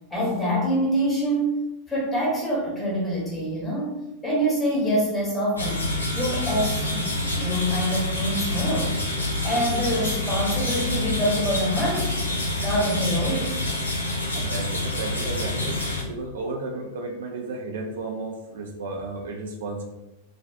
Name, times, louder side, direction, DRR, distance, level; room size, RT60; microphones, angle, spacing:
voice 1, 0.1-1.6 1.9-3.9 4.2-5.9 6.1-12.3 12.6-13.6, equal, 15° left, -5 dB, 0.9 m, -26 dB
sound 1, 5.6-16.0, left 1 dB, 80° left, 0.5 m, -27 dB
voice 2, 14.3-19.8, right 3 dB, 60° right, 1 dB, 0.3 m, -33 dB
2.4 x 2.3 x 2.3 m, 0.95 s
figure-of-eight pair, 90°, 0 cm